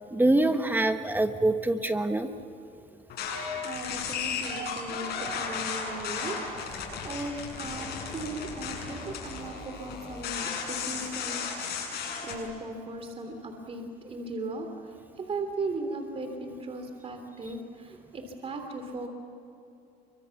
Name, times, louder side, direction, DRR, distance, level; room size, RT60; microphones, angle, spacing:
voice 1, 0.1-2.3, right 2 dB, 10° right, 8 dB, 1.3 m, -24 dB
sound 1, 3.1-12.4, left 5 dB, 70° left, 7.7 m, -35 dB
voice 2, 3.2-11.4 11.7-19.1, right 2 dB, 35° right, 5 dB, 3.2 m, -38 dB
28.5 x 24.5 x 7.2 m, 2.8 s
cardioid pair, 110°, 17 cm